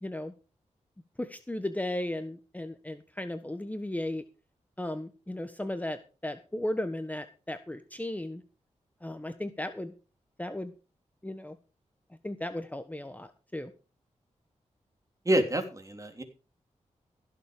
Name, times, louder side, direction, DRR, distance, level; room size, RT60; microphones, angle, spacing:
voice 1, 0.0-0.3 1.2-4.2 4.8-8.4 9.0-9.9 10.4-10.7 11.2-11.6 12.2-13.7, left 1 dB, 10° left, 9 dB, 1.3 m, -35 dB
voice 2, 15.2-16.2, right 1 dB, 25° right, 6 dB, 3.3 m, -27 dB
16.0 x 7.3 x 5.0 m, 0.34 s
cardioid pair, 60°, 13 cm